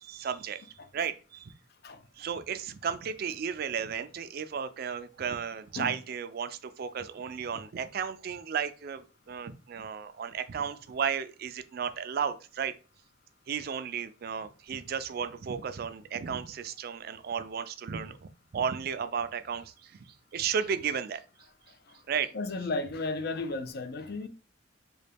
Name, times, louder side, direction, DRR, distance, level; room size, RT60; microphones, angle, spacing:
voice 1, 0.0-1.5 2.2-12.7 13.5-20.0 20.3-21.2 22.1-22.3, right 7 dB, 50° right, 0.4 m, -34 dB
voice 2, 22.3-24.3, left 3 dB, 55° left, 0.5 m, -34 dB
4.0 x 2.2 x 3.3 m
head